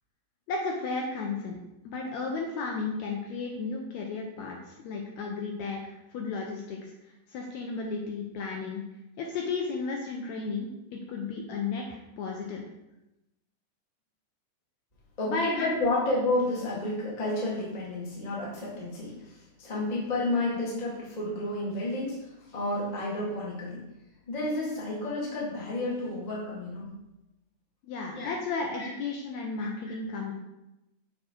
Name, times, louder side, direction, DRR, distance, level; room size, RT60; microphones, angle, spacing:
voice 1, 0.5-1.6 1.8-6.9 7.3-8.8 9.2-12.6 15.2-15.5 15.8-16.0 27.8-30.3, left 4 dB, 75° left, 0 dB, 1.7 m, -34 dB
voice 2, 15.2-19.1 19.6-22.2 22.5-23.8 24.3-26.8 28.1-28.3 28.8-28.9, left 2 dB, 30° left, -5 dB, 0.7 m, -30 dB
6.5 x 3.6 x 4.4 m, 0.92 s
omnidirectional pair, 3.7 m